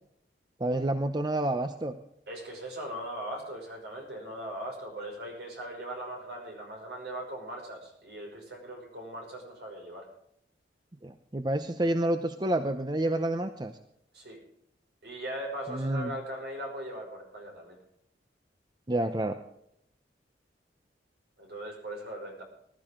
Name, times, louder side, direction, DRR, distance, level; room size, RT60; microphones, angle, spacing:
voice 1, 0.6-2.0 11.0-13.7 15.7-16.1 18.9-19.4, right 1 dB, 25° right, 8 dB, 0.7 m, -29 dB
voice 2, 2.3-10.1 14.1-14.4 15.0-17.8 21.4-22.4, right 1 dB, 65° right, 1 dB, 5.8 m, -39 dB
19.5 x 12.5 x 3.8 m, 0.74 s
head